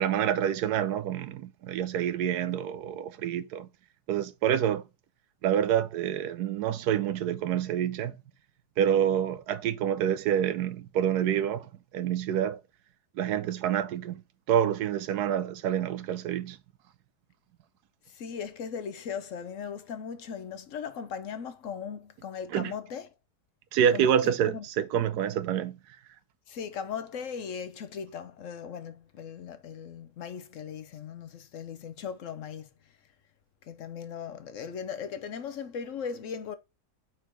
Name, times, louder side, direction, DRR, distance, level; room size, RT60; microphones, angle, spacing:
voice 1, 0.0-3.7 4.1-4.8 5.4-8.2 8.8-12.6 13.2-14.2 14.5-16.6 22.5-22.7 23.7-25.8, right 9 dB, 90° right, 1.2 m, -27 dB
voice 2, 18.1-23.1 23.9-24.6 26.5-32.7 33.6-36.6, left 7 dB, 65° left, 0.9 m, -38 dB
4.6 x 4.5 x 5.0 m
omnidirectional pair, 1.7 m